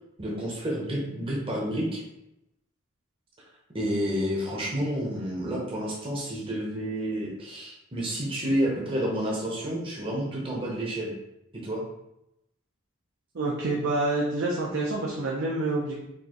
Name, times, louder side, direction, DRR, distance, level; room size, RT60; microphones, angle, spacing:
voice 1, 0.2-2.0 3.7-11.1 11.6-11.8, equal, 25° right, -4 dB, 0.8 m, -30 dB
voice 2, 13.3-16.0, right 2 dB, 60° right, -3 dB, 0.6 m, -27 dB
4.5 x 2.7 x 3.0 m, 0.85 s
head